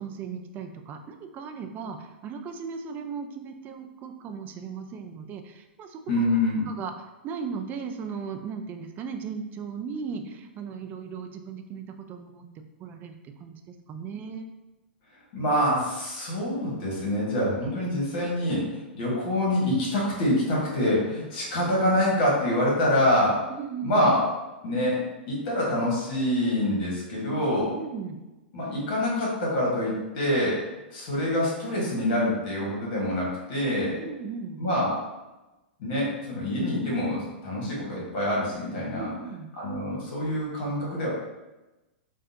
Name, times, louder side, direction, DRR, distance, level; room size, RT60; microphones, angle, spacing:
voice 1, 0.0-6.2 6.7-6.9 7.2-14.5 23.5-24.1 27.7-28.2 34.0-34.6 38.9-39.5, right 6 dB, 30° right, 6 dB, 0.3 m, -37 dB
voice 2, 6.1-6.6 15.3-23.4 23.8-24.2 24.6-27.7 28.5-30.6 30.9-34.0 34.6-35.0 35.8-39.1 39.6-41.1, left 1 dB, 50° left, -4 dB, 1.4 m, -26 dB
3.5 x 2.3 x 2.7 m, 1.1 s
hypercardioid pair, 110°, 6 cm